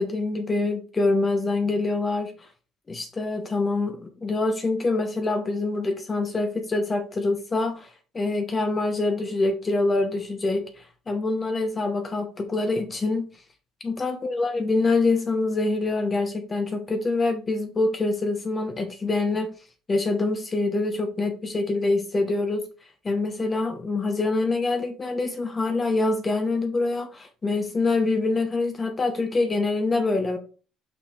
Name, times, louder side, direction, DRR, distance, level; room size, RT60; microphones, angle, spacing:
voice 1, 0.0-2.5 2.9-7.9 8.1-13.2 13.8-19.5 19.9-22.7 23.0-30.4, left 3 dB, 25° left, 0.8 m, -25 dB
5.9 x 4.7 x 3.4 m
cardioid pair, 120°, 0 cm